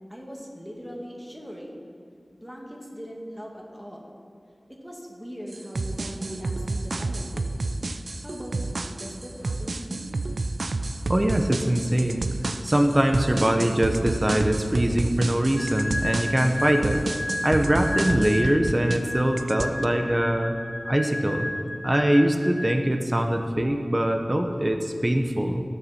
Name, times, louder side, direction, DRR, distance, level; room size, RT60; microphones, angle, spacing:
voice 1, 0.1-1.8 2.4-4.1 4.7-7.6 8.2-10.1, equal, 5° right, -2 dB, 2.4 m, -40 dB
sound 1, 5.5-19.1 19.4-19.9, right 2 dB, 80° right, 0.5 m, -30 dB
voice 2, 11.1-12.3 12.6-17.0 17.4-20.6 20.9-21.5 21.8-25.6, right 1 dB, 25° right, 4 dB, 0.9 m, -23 dB
sound 2, 15.6-23.2, left 1 dB, 25° left, 0.7 m, -33 dB
18.5 x 7.0 x 4.4 m, 2.3 s
wide cardioid pair, 45°, 0 cm